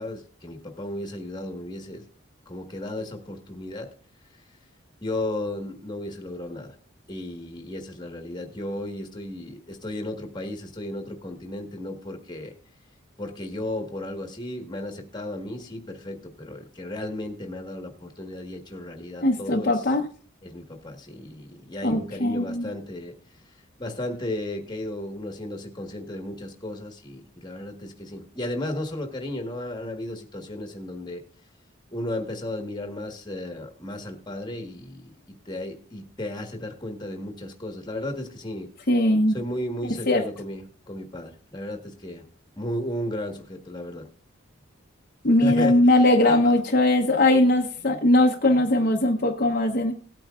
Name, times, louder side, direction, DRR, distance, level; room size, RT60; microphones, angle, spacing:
voice 1, 0.0-2.0 2.4-3.9 5.0-6.8 7.1-12.5 13.2-19.9 20.4-23.1 23.8-31.2 31.9-38.7 39.3-42.3 42.6-44.1 45.4-46.5, left 1 dB, 20° left, 4 dB, 1.5 m, -34 dB
voice 2, 19.2-20.1 21.8-22.7 38.9-39.4 40.1-40.2 45.2-49.9, left 1 dB, 45° left, 1 dB, 0.9 m, -20 dB
18.5 x 9.0 x 2.4 m, 0.43 s
head